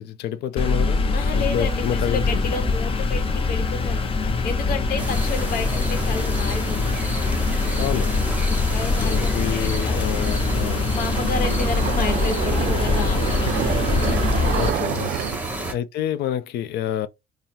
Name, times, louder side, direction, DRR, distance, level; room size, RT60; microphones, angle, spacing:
voice 1, 0.0-1.1 1.3-2.4 7.8-8.2 9.0-10.9 14.5-15.1 15.7-17.1, left 10 dB, 75° left, 0.5 m, -28 dB
sound 1, 0.6-14.7, left 4 dB, 35° left, 0.6 m, -23 dB
voice 2, 1.1-4.1 4.4-7.2 8.4-10.1 10.9-13.9 15.5-15.8, left 5 dB, 60° left, 1.0 m, -31 dB
sound 2, 5.0-15.7, right 2 dB, 10° right, 1.0 m, -31 dB
sound 3, 10.7-15.4, right 12 dB, 60° right, 0.4 m, -28 dB
3.6 x 2.0 x 4.3 m
cardioid pair, 110°, 17 cm